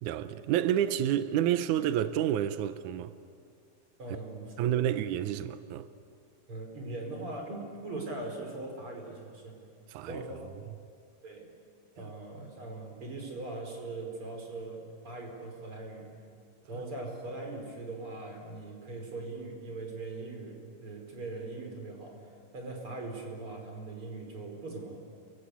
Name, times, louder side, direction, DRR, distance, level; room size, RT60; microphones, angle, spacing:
voice 1, 0.0-3.1 4.6-5.9 9.9-10.2 12.0-12.1 12.4-12.5 16.7-16.8, right 11 dB, 85° right, 1.7 m, -29 dB
voice 2, 4.0-5.0 6.5-9.6 10.0-10.5 11.2-11.5 12.0-16.1 16.7-25.0, right 2 dB, 35° right, 5.5 m, -41 dB
29.5 x 23.5 x 8.4 m
omnidirectional pair, 4.5 m